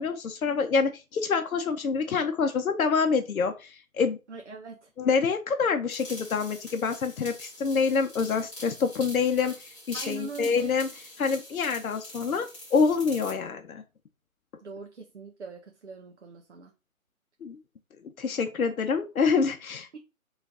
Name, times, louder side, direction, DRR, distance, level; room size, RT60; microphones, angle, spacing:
voice 1, 0.0-4.2 5.0-13.8 17.4-17.6 18.2-20.0, left 5 dB, 75° left, 0.7 m, -26 dB
voice 2, 4.3-4.8 9.9-10.7 14.6-16.7 19.9-20.0, right 3 dB, 55° right, 0.7 m, -41 dB
sound 1, 5.9-13.4, left 1 dB, 20° left, 1.7 m, -45 dB
4.0 x 3.1 x 3.7 m
hypercardioid pair, 170°, 42 cm